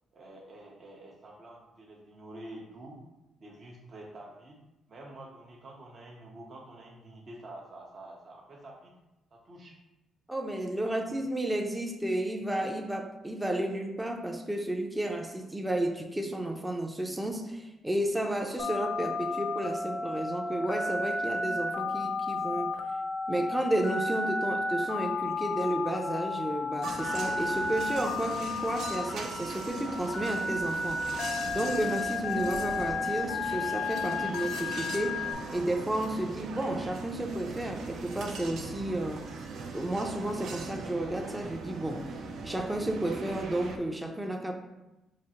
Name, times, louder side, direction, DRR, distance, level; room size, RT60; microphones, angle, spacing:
voice 1, 0.1-3.0 3.4-4.6 4.9-8.9 9.3-9.8 11.1-11.2, right 1 dB, 50° right, -2 dB, 0.7 m, -48 dB
voice 2, 10.3-22.8 23.3-31.0 31.5-39.2 39.7-44.5, right 1 dB, 10° right, 2 dB, 0.5 m, -32 dB
Telephone, 18.6-35.3, left 3 dB, 60° left, 0.5 m, -33 dB
sound 1, 26.8-43.8, right 4 dB, 75° right, 0.4 m, -40 dB
5.0 x 2.4 x 2.8 m, 0.96 s
cardioid pair, 90°, 0 cm